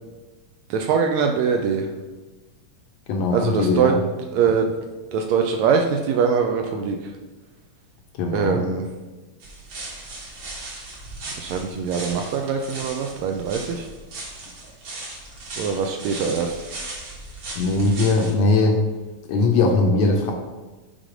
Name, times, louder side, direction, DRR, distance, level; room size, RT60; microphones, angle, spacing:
voice 1, 0.7-1.9 3.3-4.0 4.3-4.7 5.1-7.0 8.3-8.8 11.4-13.9 15.6-16.6, right 6 dB, 80° right, 3 dB, 1.7 m, -22 dB
voice 2, 3.1-4.0 8.2-8.6 17.6-18.8 19.3-20.3, left 3 dB, 75° left, 2 dB, 1.7 m, -20 dB
sound 1, 9.4-18.3, right 2 dB, 50° right, 1.8 m, -37 dB
6.5 x 3.8 x 4.9 m, 1.2 s
omnidirectional pair, 3.5 m